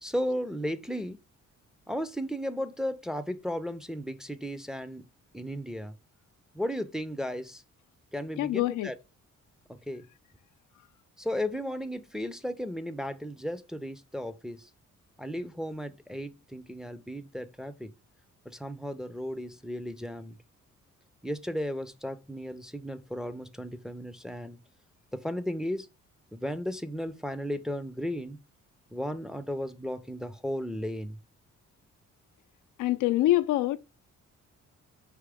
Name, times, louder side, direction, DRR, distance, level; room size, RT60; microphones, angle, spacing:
voice 1, 0.0-1.2 1.9-5.0 5.3-5.9 6.5-7.6 8.1-8.9 9.9-10.0 11.2-14.7 15.2-17.9 18.5-20.4 21.2-24.6 25.1-25.9 26.3-28.4 28.9-31.2, equal, ahead, 0.5 m, -35 dB
voice 2, 8.4-8.9 32.8-33.8, left 15 dB, 85° left, 0.4 m, -25 dB
4.9 x 3.0 x 3.4 m
cardioid pair, 90°, 30 cm